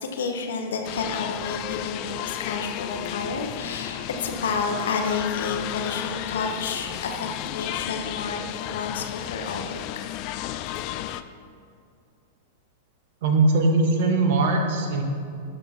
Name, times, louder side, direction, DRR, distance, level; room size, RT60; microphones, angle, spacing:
voice 1, 0.0-9.8, left 4 dB, 70° left, 3 dB, 1.0 m, -30 dB
sound 1, 0.8-11.2, left 13 dB, 45° left, 0.3 m, -33 dB
voice 2, 13.2-15.0, right 3 dB, 60° right, 3 dB, 1.2 m, -20 dB
12.0 x 4.5 x 4.3 m, 2.4 s
figure-of-eight pair, 100°, 0 cm